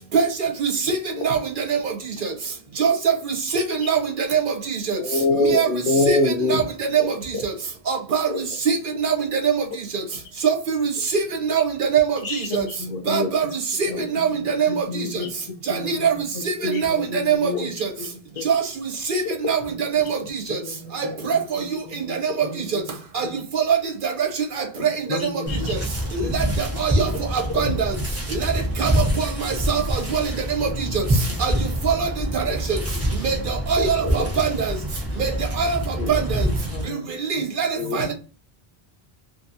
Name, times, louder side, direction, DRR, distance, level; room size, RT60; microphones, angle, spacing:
voice 1, 0.1-1.0 1.2-1.9 2.2-2.3 2.8-5.0 5.4-5.7 6.1-7.0 7.4-7.5 7.9-9.6 9.9-10.0 10.4-12.2 12.5-12.6 13.1-14.8 15.7-17.9 18.4-19.2 19.5-20.6 20.9-21.7 21.9-22.5 22.7-22.8 23.1-23.3 23.5-24.3 24.5-24.9 25.2-25.3 25.7-25.8 26.1-27.9 28.3-28.5 28.8-31.0 31.4-31.5 31.8-32.1 32.3-32.8 33.2-34.8 35.2-35.3 35.6-36.5 37.2-38.1, right 6 dB, 60° right, 0.8 m, -23 dB
voice 2, 5.0-6.6 7.0-7.1 8.3-8.4 17.5-17.6 25.5-25.6 34.0-34.3 36.0-36.2 37.8-38.0, left 2 dB, 90° left, 1.0 m, -22 dB
voice 3, 12.2-13.3 13.8-15.3 15.7-18.5 19.6-19.8 20.2-23.0 23.2-23.4 24.8-25.8 26.2-27.6 30.1-30.2 30.6-31.0 31.3-31.6 32.3-32.4 33.2-33.4 34.2-34.7 35.8-37.1 37.4-37.5 37.8-38.1, left 4 dB, 45° left, 0.6 m, -35 dB
sound 1, 25.5-36.9, equal, 20° right, 0.5 m, -26 dB
2.6 x 2.6 x 2.6 m
omnidirectional pair, 1.1 m